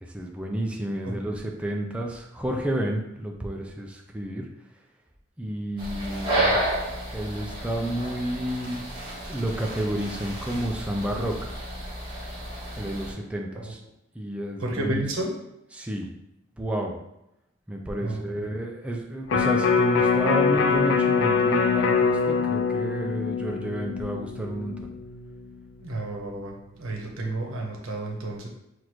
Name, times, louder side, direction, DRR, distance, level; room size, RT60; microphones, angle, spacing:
voice 1, 0.0-4.5 5.4-6.6 7.1-8.8 9.3-11.5 12.8-13.8 14.1-15.0 15.7-16.1 16.6-17.0 17.7-24.9, right 1 dB, 5° right, 0 dB, 0.4 m, -30 dB
sound 1, 5.8-13.1, right 1 dB, 25° right, 1.2 m, -31 dB
voice 2, 14.6-15.3 18.0-18.5 25.8-28.5, right 2 dB, 85° right, 0 dB, 0.9 m, -31 dB
Electric guitar, 19.3-25.5 25.9-26.0, left 5 dB, 65° left, 0.4 m, -24 dB
6.0 x 2.5 x 3.0 m, 0.85 s
head